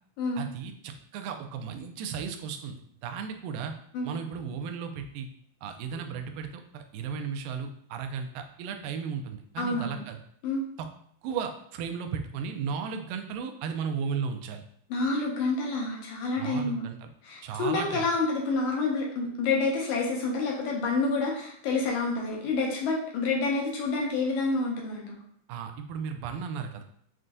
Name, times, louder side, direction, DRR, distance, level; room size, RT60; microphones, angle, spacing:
voice 1, 0.4-3.7 4.0-5.3 5.6-10.2 10.8-10.9 11.2-14.7 16.4-17.0 17.4-18.1 25.5-26.8, right 6 dB, 85° right, 6 dB, 2.1 m, -35 dB
voice 2, 9.6-10.0 10.4-10.6 14.9-16.8 17.2-25.2, left 3 dB, 75° left, -1 dB, 1.9 m, -28 dB
7.4 x 2.5 x 2.2 m, 0.65 s
omnidirectional pair, 4.0 m